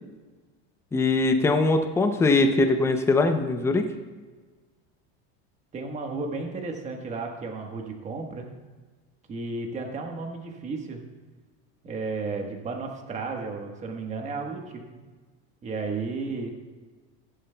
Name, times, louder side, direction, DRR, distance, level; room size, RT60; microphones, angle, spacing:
voice 1, 0.9-3.8, left 3 dB, 10° left, 6 dB, 0.5 m, -21 dB
voice 2, 5.7-8.5 9.3-11.0 11.8-15.0 15.6-16.5, right 3 dB, 20° right, 2 dB, 1.3 m, -33 dB
15.5 x 11.0 x 2.2 m, 1.4 s
supercardioid pair, 155°, 34 cm